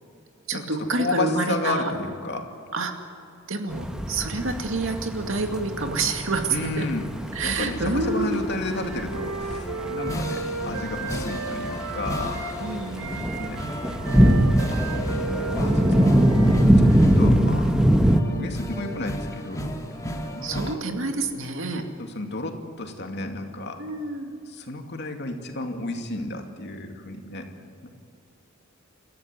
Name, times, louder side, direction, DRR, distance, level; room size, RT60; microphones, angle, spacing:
voice 1, 0.5-1.9 2.7-2.9 3.5-6.9 7.3-8.4 12.6-13.4 18.2-18.5 20.4-21.9 23.8-24.3, right 3 dB, 70° right, 5 dB, 2.3 m, -28 dB
voice 2, 1.0-2.5 6.5-7.1 7.4-12.6 13.4-13.6 14.7-14.8 15.3-16.2 16.6-17.8 18.3-19.7 20.3-20.8 22.0-23.8 24.5-27.5 27.8-27.9, left 2 dB, 55° left, 4 dB, 2.6 m, -32 dB
sound 1, 3.7-18.2, equal, 5° right, 1.2 m, -23 dB
Wind instrument woodwind instrument, 8.6-12.6 12.9-17.2, right 3 dB, 85° right, 3.0 m, -34 dB
sound 2, 9.4-20.8, equal, 15° left, 2.2 m, -34 dB
29.5 x 14.0 x 9.6 m, 2.6 s
head